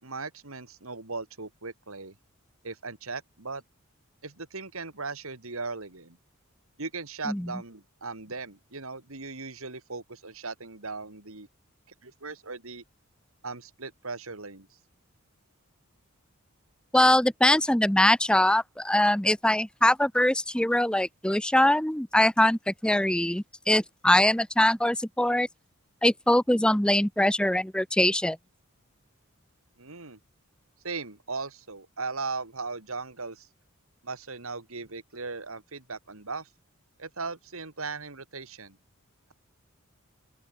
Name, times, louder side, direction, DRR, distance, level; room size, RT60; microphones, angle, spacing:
voice 1, 0.0-2.1 2.6-3.6 4.2-6.2 6.8-11.5 12.0-12.8 13.4-14.7 29.8-30.2 30.8-33.5 34.0-36.5 37.0-38.8, right 4 dB, 75° right, 2.7 m, -38 dB
voice 2, 16.9-25.5 26.0-28.4, left 1 dB, 5° left, 0.6 m, -23 dB
open air
head